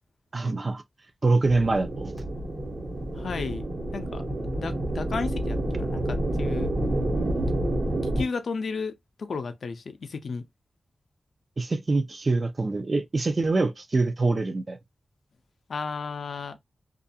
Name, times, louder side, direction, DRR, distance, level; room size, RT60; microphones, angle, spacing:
voice 1, 0.3-0.8 1.2-2.1 11.6-14.8, right 3 dB, 40° right, 0.4 m, -24 dB
sound 1, 1.4-8.2, right 1 dB, 55° right, 1.1 m, -29 dB
voice 2, 3.1-3.6 3.9-4.2 4.6-6.7 8.2-8.9 9.2-10.4 15.7-16.6, left 4 dB, 75° left, 0.4 m, -33 dB
2.4 x 2.3 x 2.6 m
wide cardioid pair, 130°, 0 cm